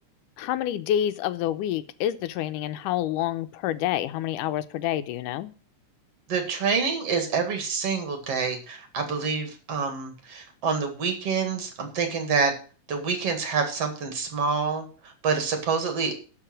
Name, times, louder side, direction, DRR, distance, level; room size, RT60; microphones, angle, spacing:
voice 1, 0.4-5.5, left 11 dB, 85° left, 13 dB, 2.3 m, -28 dB
voice 2, 6.3-12.5 12.9-16.1, right 5 dB, 55° right, 6 dB, 2.8 m, -27 dB
11.5 x 5.3 x 7.4 m, 0.38 s
omnidirectional pair, 3.6 m